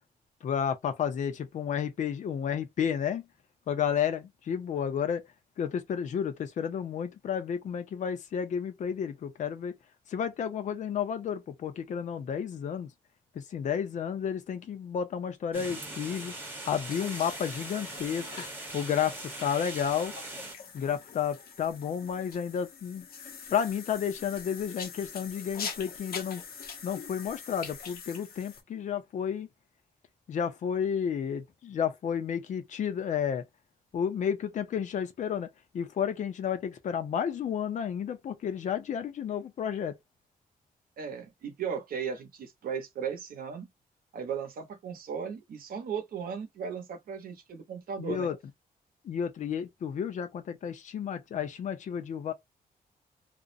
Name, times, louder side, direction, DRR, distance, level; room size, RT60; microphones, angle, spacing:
voice 1, 0.4-3.3 3.7-5.2 5.6-9.7 10.1-12.9 13.3-16.3 16.7-18.3 18.7-20.1 20.7-23.1 23.5-26.4 26.8-29.5 30.3-33.4 33.9-35.5 35.7-40.0 48.0-48.4 49.0-52.3, left 8 dB, 55° left, 0.5 m, -31 dB
sound 1, 15.5-20.5, right 2 dB, 15° right, 0.8 m, -41 dB
sound 2, 16.9-28.6, left 6 dB, 80° left, 0.8 m, -44 dB
voice 2, 41.0-43.7 44.1-48.3, right 7 dB, 70° right, 0.8 m, -36 dB
2.4 x 2.1 x 2.5 m
wide cardioid pair, 165°, 15 cm